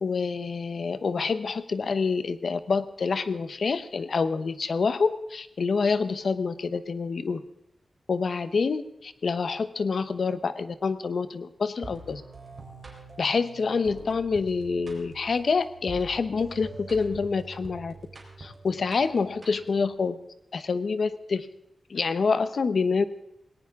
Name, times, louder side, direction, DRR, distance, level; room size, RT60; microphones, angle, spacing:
voice 1, 0.0-7.4 8.1-12.2 13.2-17.9 18.4-20.2 20.5-21.5 21.9-23.0, left 4 dB, 60° left, 13 dB, 0.8 m, -27 dB
sound 1, 11.8-19.9, right 3 dB, 30° right, 3.7 m, -45 dB
19.0 x 18.0 x 3.6 m, 0.81 s
wide cardioid pair, 160°, 0 cm